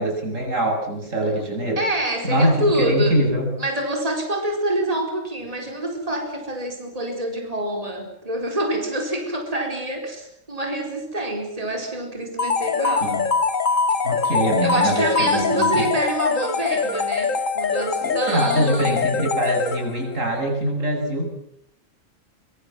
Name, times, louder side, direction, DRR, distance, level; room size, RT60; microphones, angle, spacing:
voice 1, 0.0-1.8 2.2-3.5 13.0-13.2 14.0-15.9 18.0-21.4, right 1 dB, 80° right, 1 dB, 8.3 m, -23 dB
voice 2, 1.8-3.2 3.6-13.2 14.6-19.0, right 1 dB, 30° right, 2 dB, 4.5 m, -26 dB
sound 1, 12.4-20.1, left 4 dB, 90° left, 2.1 m, -23 dB
24.5 x 24.0 x 7.6 m, 0.74 s
omnidirectional pair, 1.3 m